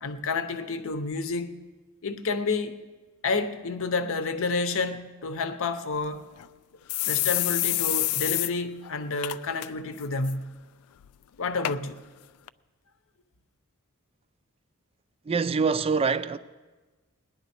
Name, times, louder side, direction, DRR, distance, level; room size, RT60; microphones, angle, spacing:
voice 1, 0.0-1.5 2.0-2.8 3.2-6.3 7.1-10.6 11.4-12.0, left 3 dB, 65° left, 0.8 m, -30 dB
sound 1, 6.0-6.1 6.4-6.5 6.9-8.5 8.8-8.9 9.2-9.7 10.0-10.3 11.0-11.1 11.6-11.8 12.5-12.6, left 17 dB, 85° left, 0.3 m, -27 dB
voice 2, 15.2-16.4, right 5 dB, 25° right, 0.4 m, -25 dB
18.5 x 10.5 x 4.3 m
head